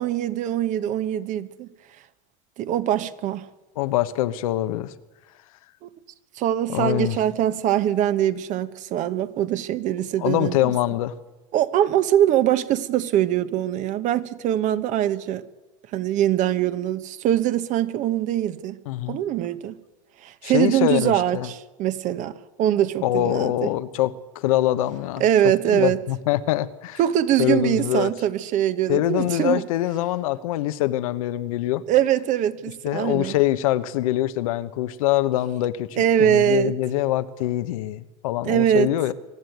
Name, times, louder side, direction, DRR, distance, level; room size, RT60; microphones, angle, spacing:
voice 1, 0.0-1.7 2.6-3.4 5.8-5.9 6.4-10.6 11.5-15.5 15.9-18.8 19.1-19.8 20.2-23.7 25.2-26.0 27.0-29.7 31.9-33.3 36.0-36.7 38.4-38.9, right 11 dB, 45° right, 1.2 m, -22 dB
voice 2, 3.8-4.9 6.7-7.2 10.2-11.2 18.9-19.2 20.4-21.5 23.0-27.0 27.4-28.1 28.9-31.8 32.8-39.1, left 14 dB, 80° left, 1.1 m, -24 dB
23.5 x 12.5 x 9.4 m
supercardioid pair, 125°, 18 cm